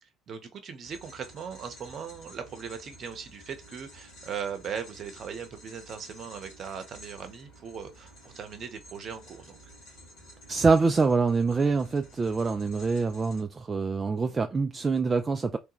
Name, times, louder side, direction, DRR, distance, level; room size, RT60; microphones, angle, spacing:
voice 1, 0.0-9.6, right 7 dB, 50° right, 0.8 m, -39 dB
sound 1, 0.8-13.4, equal, 70° left, 1.8 m, -51 dB
voice 2, 10.5-15.6, right 4 dB, 30° right, 0.3 m, -25 dB
3.3 x 2.2 x 3.0 m
figure-of-eight pair, 55°, 0 cm